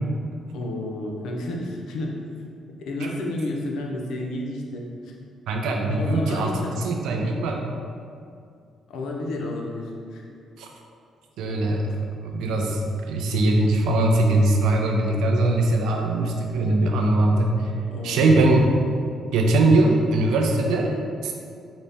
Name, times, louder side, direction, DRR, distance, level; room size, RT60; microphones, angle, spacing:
voice 1, 0.5-2.2 2.8-5.1 6.0-6.9 8.9-10.2 17.9-18.5, left 1 dB, 80° left, 0 dB, 0.5 m, -31 dB
voice 2, 5.5-7.7 10.6-10.7 11.4-11.9 12.2-12.8 13.1-17.7 18.0-18.6 19.3-21.3, right 2 dB, 85° right, 1 dB, 0.4 m, -21 dB
4.0 x 2.1 x 3.3 m, 2.4 s
cardioid pair, 90°, 0 cm